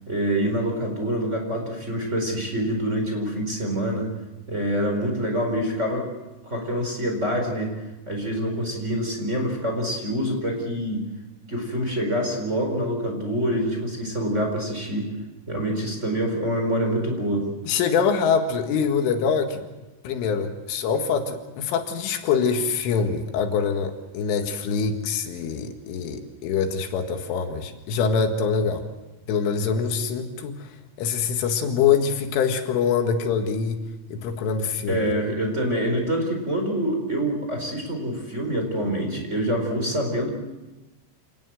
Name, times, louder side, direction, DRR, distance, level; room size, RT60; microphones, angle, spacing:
voice 1, 0.1-4.1 4.5-6.1 6.4-7.7 8.1-11.0 11.5-15.1 15.5-17.5 34.9-40.3, equal, 15° right, 1 dB, 4.4 m, -26 dB
voice 2, 17.7-19.6 20.0-28.9 29.3-30.7 31.0-33.8 34.1-35.1, left 6 dB, 80° left, 6 dB, 4.3 m, -24 dB
27.5 x 19.5 x 7.9 m, 1.1 s
omnidirectional pair, 5.6 m